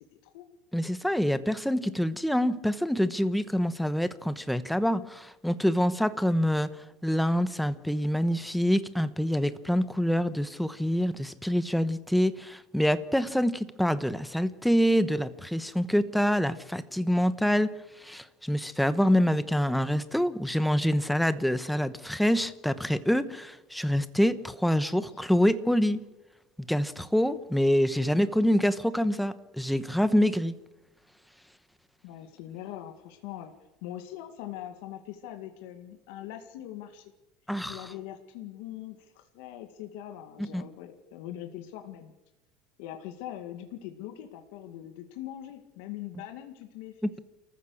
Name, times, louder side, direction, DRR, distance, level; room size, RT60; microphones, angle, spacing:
voice 1, 0.7-6.7 7.0-17.7 18.0-26.0 26.6-30.5 37.5-37.8 40.4-40.6 47.0-47.1, equal, ahead, 13 dB, 1.0 m, -26 dB
voice 2, 32.0-33.5 33.8-37.1 37.7-42.1 42.8-47.2, left 12 dB, 75° left, 6 dB, 2.0 m, -42 dB
30.0 x 14.5 x 6.5 m, 1.0 s
cardioid pair, 140°, 0 cm